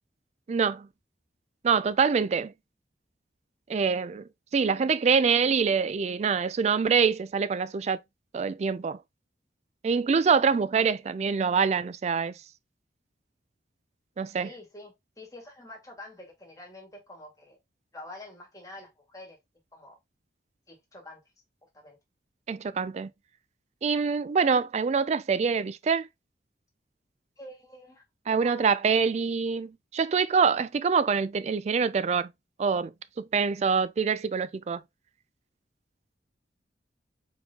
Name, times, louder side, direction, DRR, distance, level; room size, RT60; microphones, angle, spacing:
voice 1, 0.5-0.9 1.6-2.5 3.7-8.0 8.3-9.0 9.8-12.3 14.2-14.5 22.5-23.1 23.8-26.1 28.3-32.3 32.6-34.8, right 5 dB, 35° right, 0.3 m, -25 dB
voice 2, 14.4-17.6 17.9-19.4 19.7-20.0 20.7-21.2 21.7-22.0 27.4-28.0 28.4-28.7, left 1 dB, 20° left, 1.7 m, -47 dB
4.3 x 3.9 x 2.7 m
head